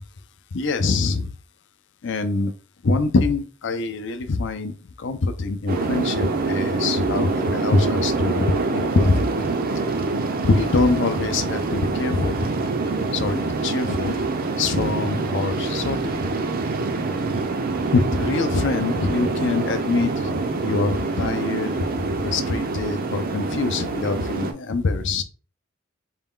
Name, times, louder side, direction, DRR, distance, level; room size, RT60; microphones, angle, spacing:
voice 1, 0.5-1.3 2.0-2.5 2.8-9.5 10.4-12.5 13.1-14.2 14.6-16.3 17.9-25.2, left 3 dB, 55° left, 9 dB, 0.5 m, -24 dB
sound 1, 5.7-24.5, right 3 dB, 45° right, 0.5 m, -25 dB
4.1 x 2.3 x 3.7 m, 0.38 s
head